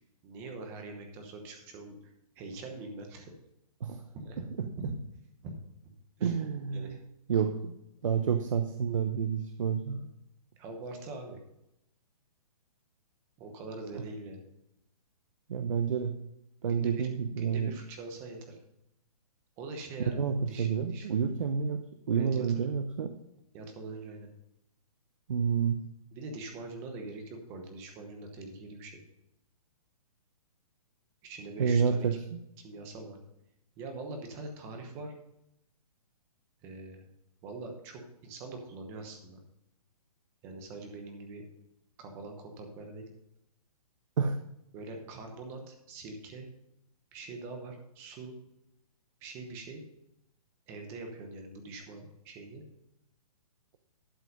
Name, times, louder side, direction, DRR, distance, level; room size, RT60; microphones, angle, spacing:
voice 1, 0.2-3.3 4.1-4.4 4.8-4.9 5.4-5.5 6.2-6.3 6.7-7.0 7.3-7.5 9.9-10.1 10.6-11.4 13.4-14.5 16.7-17.1 17.4-18.6 19.6-20.2 20.5-21.1 22.1-22.6 23.5-24.3 26.1-29.0 31.2-32.1 32.6-33.2 33.8-35.2 36.6-37.0 37.4-39.4 40.4-41.4 42.0-43.1 44.7-46.5 47.1-48.4 49.2-49.8 50.7-52.6, right 3 dB, 15° right, 4 dB, 1.0 m, -43 dB
voice 2, 6.2-7.0 7.3-7.7 8.0-10.0 13.9-14.0 15.5-16.2 16.6-17.7 20.1-23.1 25.3-25.8 31.6-32.4 44.2-44.4, right 6 dB, 55° right, 7 dB, 0.8 m, -29 dB
11.5 x 5.4 x 5.3 m, 0.84 s
hypercardioid pair, 175°, 20 cm